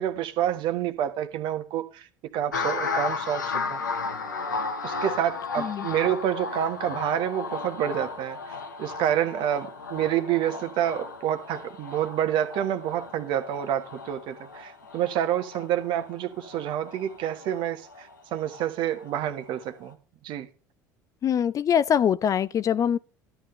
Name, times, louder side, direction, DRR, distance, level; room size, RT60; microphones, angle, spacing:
voice 1, 0.0-2.1 2.3-3.8 4.8-20.0 20.2-20.5, right 11 dB, 55° right, 1.4 m, -28 dB
sound 1, 2.5-19.1 19.5-19.9, left 4 dB, 85° left, 1.4 m, -35 dB
voice 2, 21.2-23.0, left 8 dB, 35° left, 0.5 m, -23 dB
13.0 x 9.6 x 3.2 m
figure-of-eight pair, 70°, 10 cm